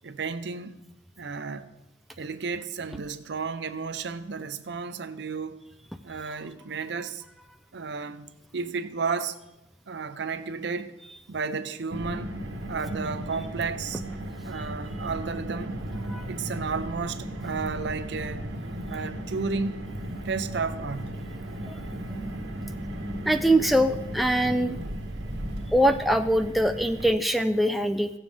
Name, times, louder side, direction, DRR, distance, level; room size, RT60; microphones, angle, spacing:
voice 1, 0.0-0.7 1.2-1.7 2.2-5.6 6.0-7.2 7.7-9.4 9.9-11.0 11.3-12.3 12.7-14.0 14.4-15.8 16.3-18.6 18.9-19.9 20.2-21.3, right 4 dB, 65° right, 0.6 m, -32 dB
Car, 11.9-27.1, right 1 dB, 85° right, 1.3 m, -36 dB
voice 2, 21.7-22.0 23.3-24.7 25.7-28.1, right 1 dB, ahead, 0.3 m, -23 dB
16.5 x 7.1 x 3.3 m
head